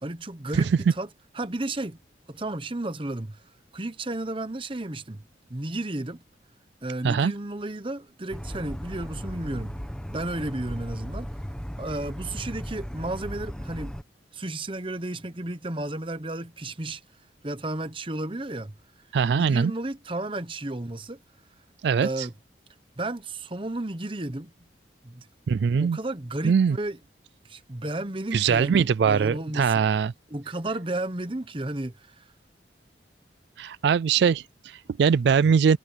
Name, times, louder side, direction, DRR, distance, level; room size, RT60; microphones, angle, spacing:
voice 1, 0.0-1.1 1.3-2.0 2.3-3.4 3.7-5.2 5.5-6.2 6.8-9.8 10.1-11.3 11.8-14.0 14.3-17.0 17.4-18.7 19.3-21.2 22.0-22.3 23.0-24.5 25.0-25.3 25.8-27.0 27.4-29.8 30.3-32.2, right 2 dB, 30° right, 1.0 m, -33 dB
sound 1, 8.3-14.0, equal, 5° left, 1.1 m, -36 dB
voice 2, 19.1-19.7 21.8-22.3 25.5-26.0 26.4-26.8 28.3-30.1 33.6-35.8, right 6 dB, 70° right, 0.3 m, -22 dB
head